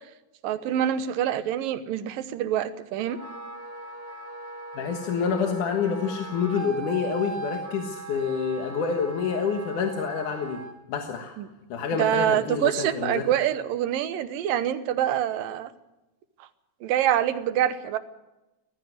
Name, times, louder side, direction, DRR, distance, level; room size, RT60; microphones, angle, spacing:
voice 1, 0.4-3.2 11.4-11.5 12.0-15.7 16.8-18.0, right 11 dB, 85° right, 12 dB, 2.8 m, -25 dB
Wind instrument woodwind instrument, 3.0-10.7, right 3 dB, 30° right, 2.1 m, -39 dB
voice 2, 4.8-10.6 10.9-11.4 11.7-13.3, left 6 dB, 65° left, 4 dB, 2.8 m, -28 dB
18.5 x 15.0 x 9.4 m, 0.99 s
omnidirectional pair, 3.9 m